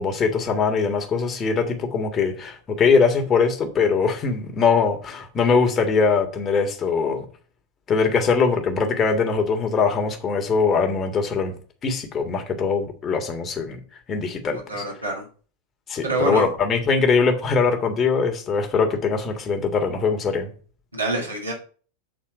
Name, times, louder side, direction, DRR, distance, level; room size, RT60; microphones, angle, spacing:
voice 1, 0.0-7.2 7.9-11.5 11.8-13.8 14.1-14.8 15.9-20.5, left 5 dB, 25° left, 4 dB, 1.6 m, -22 dB
voice 2, 14.5-15.3 16.0-16.5 20.9-21.5, right 2 dB, 80° right, -2 dB, 2.3 m, -26 dB
7.7 x 4.2 x 6.0 m, 0.39 s
figure-of-eight pair, 90°, 0 cm